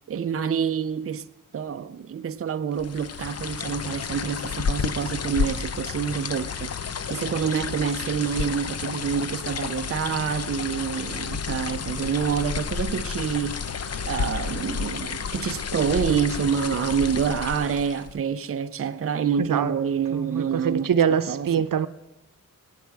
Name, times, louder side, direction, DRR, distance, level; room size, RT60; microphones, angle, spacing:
voice 1, 0.1-1.3 1.5-6.7 7.1-13.7 14.1-21.6, right 7 dB, 45° right, 0.5 m, -27 dB
sound 1, 2.8-18.2, left 6 dB, 50° left, 0.6 m, -31 dB
voice 2, 20.1-21.9, right 8 dB, 90° right, 0.7 m, -23 dB
25.0 x 9.2 x 4.7 m
wide cardioid pair, 140°, 32 cm